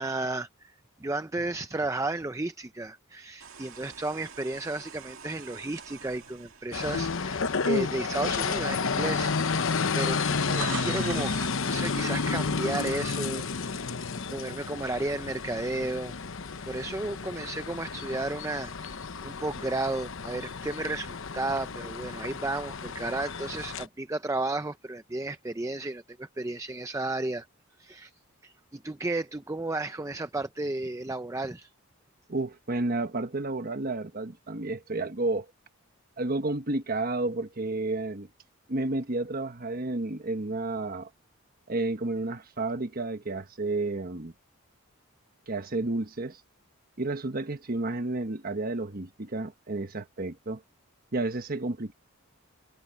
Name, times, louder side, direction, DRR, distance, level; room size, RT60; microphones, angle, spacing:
voice 1, 0.0-9.7 9.9-11.4 11.6-16.1 16.6-19.0 19.2-27.5 27.8-28.1 28.4-31.7, right 2 dB, 15° right, 0.5 m, -33 dB
sound 1, 3.4-7.6 8.2-8.4 9.3-9.4 9.6-11.6, right 6 dB, 65° right, 2.3 m, -43 dB
sound 2, 6.7-23.9, left 4 dB, 60° left, 0.9 m, -31 dB
voice 2, 32.3-35.5 36.2-38.3 38.7-41.1 41.7-44.3 45.5-46.4 47.0-50.6 51.1-51.9, right 2 dB, 40° right, 1.2 m, -31 dB
head